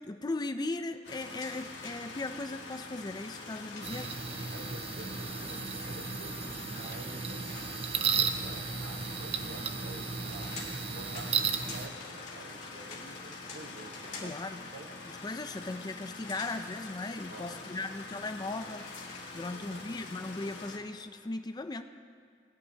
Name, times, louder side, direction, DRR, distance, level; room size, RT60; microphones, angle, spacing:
voice 1, 0.0-4.1 14.2-14.6 15.2-21.8, left 2 dB, 20° left, 9 dB, 0.4 m, -38 dB
sound 1, 1.0-20.8, left 3 dB, 90° left, 1.5 m, -45 dB
sound 2, 1.4-2.4 3.3-4.4 6.2-8.5 9.9-14.5 16.2-16.6 18.8-19.3, left 3 dB, 40° left, 2.5 m, -48 dB
sound 3, 3.8-11.9, right 6 dB, 35° right, 0.5 m, -34 dB
voice 2, 4.5-10.6 10.9-14.9 17.3-17.9 19.5-19.8, right 2 dB, 85° right, 4 dB, 1.2 m, -50 dB
20.0 x 11.0 x 2.9 m, 2.1 s
head